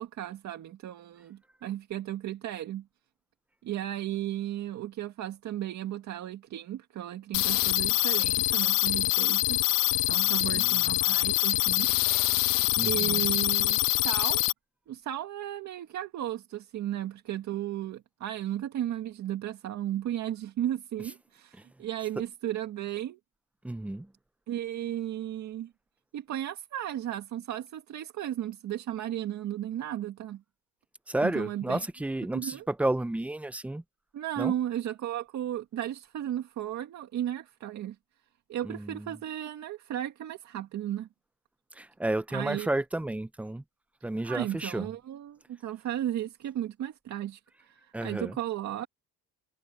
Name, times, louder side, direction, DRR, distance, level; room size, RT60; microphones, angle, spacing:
voice 1, 0.0-2.8 3.6-9.6 10.1-11.9 12.8-14.4 14.9-23.2 24.5-25.7 26.1-30.4 31.2-31.9 32.3-32.6 34.1-38.0 38.5-41.1 42.3-42.7 44.2-48.9, right 12 dB, 60° right, 2.2 m, -35 dB
sound 1, 7.3-14.5, left 18 dB, 85° left, 0.7 m, -25 dB
voice 2, 10.2-10.8 12.8-13.3 23.6-24.1 31.1-33.8 34.4-34.5 38.6-39.1 41.8-43.6 44.0-44.9 47.9-48.4, right 1 dB, 5° right, 0.5 m, -32 dB
cardioid pair, 155°, 31 cm